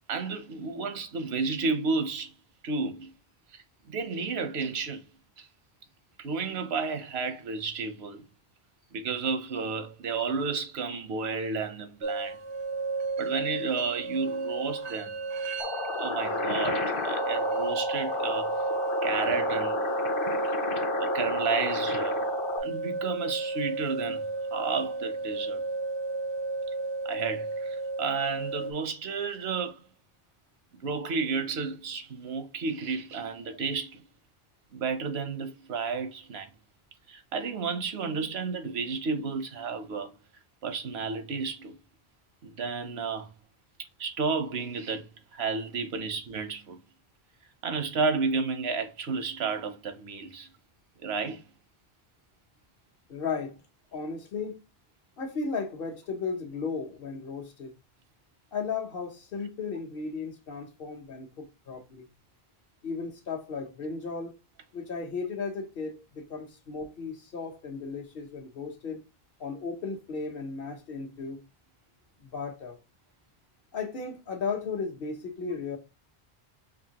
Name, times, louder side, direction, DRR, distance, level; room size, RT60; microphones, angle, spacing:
voice 1, 0.1-2.3 2.6-3.1 3.5-5.0 5.4-5.5 6.2-8.2 8.9-12.4 13.2-15.2 16.0-18.5 19.0-19.8 21.0-22.2 22.6-25.6 27.0-29.8 30.7-34.0 34.7-36.5 37.1-40.1 40.6-41.8 42.4-43.3 44.0-46.8 47.6-50.5 51.0-51.4, right 4 dB, 90° right, 1.0 m, -32 dB
sound 1, 12.0-28.7, right 3 dB, 45° right, 0.3 m, -32 dB
sound 2, 15.6-22.6, left 3 dB, 35° left, 0.6 m, -32 dB
voice 2, 53.1-53.6 53.9-54.6 55.2-57.7 58.5-62.1 62.8-64.3 64.7-69.0 69.4-71.4 72.2-72.8 73.7-75.8, left 5 dB, 65° left, 1.0 m, -35 dB
5.1 x 2.6 x 2.8 m
omnidirectional pair, 1.0 m